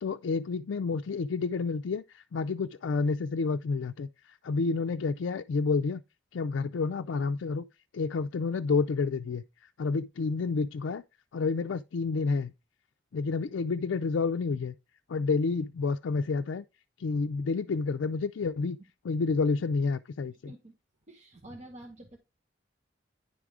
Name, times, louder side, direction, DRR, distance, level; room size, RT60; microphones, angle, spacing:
voice 1, 0.0-6.0 6.3-7.6 7.9-9.4 9.8-11.0 11.3-12.5 13.1-14.7 15.1-16.6 17.0-18.8 19.0-20.5, left 4 dB, 80° left, 0.4 m, -29 dB
voice 2, 20.3-20.7 21.1-22.2, right 1 dB, 40° right, 1.1 m, -48 dB
10.0 x 3.7 x 4.7 m
head